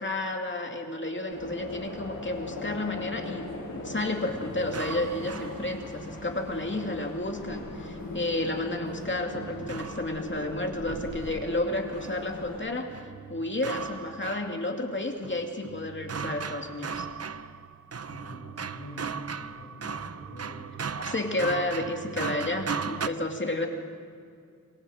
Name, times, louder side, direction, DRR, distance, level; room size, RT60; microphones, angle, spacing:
voice 1, 0.0-12.9 13.3-17.1 20.9-23.7, left 2 dB, 35° left, 3 dB, 2.4 m, -31 dB
sound 1, 1.3-12.6, left 2 dB, 80° left, 7.4 m, -39 dB
sound 2, 4.3-6.1 9.3-12.3 12.9-14.9 15.2-23.1, right 6 dB, 45° right, 0.7 m, -37 dB
voice 2, 18.1-20.7, left 1 dB, 55° left, -4 dB, 6.6 m, -45 dB
27.0 x 23.5 x 5.0 m, 2.3 s
wide cardioid pair, 95°, 34 cm